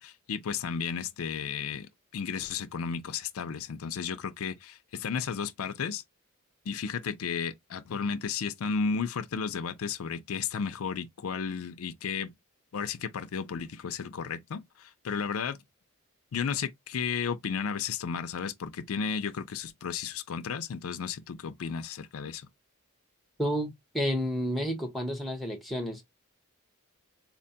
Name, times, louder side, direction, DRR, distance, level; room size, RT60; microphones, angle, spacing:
voice 1, 0.0-6.0 6.7-12.3 12.7-15.6 16.3-22.5, left 6 dB, 75° left, 0.4 m, -33 dB
voice 2, 23.4-26.0, equal, ahead, 0.7 m, -30 dB
4.2 x 2.2 x 2.6 m
head